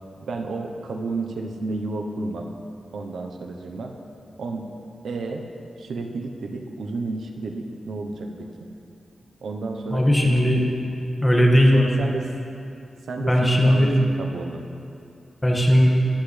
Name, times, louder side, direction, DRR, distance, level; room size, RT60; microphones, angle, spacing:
voice 1, 0.3-2.5 2.9-3.9 4.4-4.7 5.0-5.5 5.8-8.5 9.4-10.5 11.7-12.3 13.1-13.9 14.2-14.6, right 3 dB, 85° right, 3 dB, 1.0 m, -31 dB
voice 2, 9.9-10.6 11.2-11.7 13.2-13.9 15.4-15.9, equal, 15° left, -2 dB, 1.9 m, -17 dB
22.0 x 8.3 x 3.4 m, 2.6 s
wide cardioid pair, 115°, 0 cm